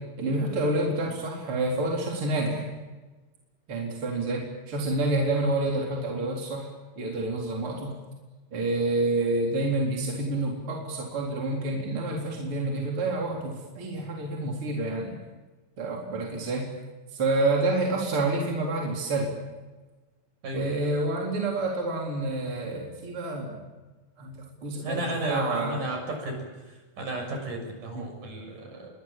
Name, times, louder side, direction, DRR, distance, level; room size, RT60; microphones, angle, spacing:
voice 1, 0.2-2.7 3.7-6.7 7.0-7.9 8.5-15.2 15.8-16.6 17.1-19.3 20.5-23.6 24.2-25.8 27.9-28.1, right 2 dB, 35° right, -1 dB, 4.6 m, -28 dB
voice 2, 24.8-26.4 27.0-28.9, right 1 dB, 60° right, 3 dB, 8.2 m, -33 dB
28.5 x 23.5 x 7.5 m, 1.2 s
omnidirectional pair, 4.1 m